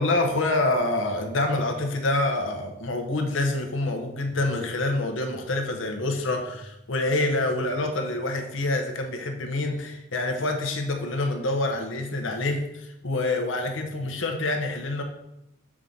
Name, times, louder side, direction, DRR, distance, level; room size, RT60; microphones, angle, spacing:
voice 1, 0.0-15.0, left 2 dB, 85° left, 4 dB, 1.0 m, -26 dB
7.3 x 4.9 x 3.9 m, 0.84 s
head